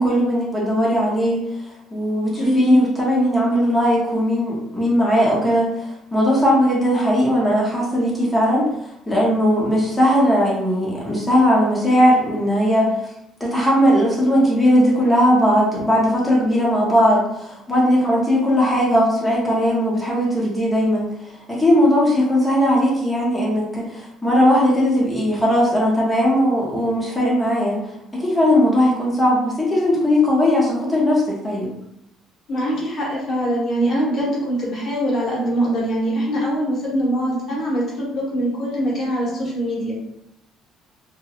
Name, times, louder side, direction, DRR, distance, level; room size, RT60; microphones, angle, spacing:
voice 1, 0.0-1.4 1.9-8.7 9.1-12.9 13.4-21.1 21.5-31.7, equal, 10° left, -5 dB, 0.8 m, -18 dB
voice 2, 2.4-2.8 32.5-40.0, equal, 40° left, -5 dB, 1.0 m, -22 dB
2.8 x 2.2 x 2.4 m, 0.79 s
cardioid pair, 160°, 0 cm